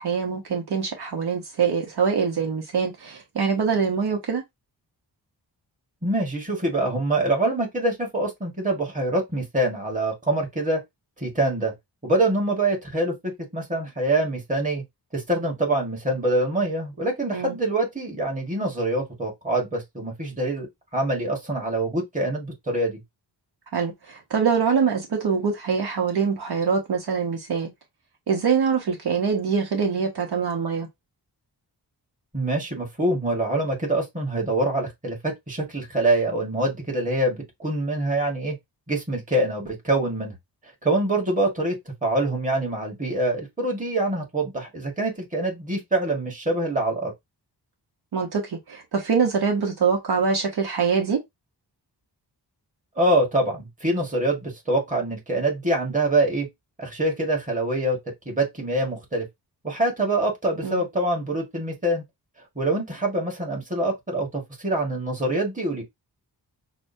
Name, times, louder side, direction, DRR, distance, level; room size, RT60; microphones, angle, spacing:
voice 1, 0.0-4.4 17.3-17.6 23.7-27.7 28.3-30.9 48.1-51.2 60.6-60.8, right 6 dB, 65° right, 1.1 m, -24 dB
voice 2, 6.0-10.8 11.2-11.7 12.0-13.1 13.5-14.8 15.1-20.7 20.9-23.0 32.3-38.5 38.9-40.4 40.8-47.1 53.0-56.5 56.8-58.0 58.2-59.3 59.6-62.0 62.5-65.8, right 2 dB, 20° right, 1.6 m, -25 dB
6.1 x 2.3 x 2.7 m
wide cardioid pair, 145°, 41 cm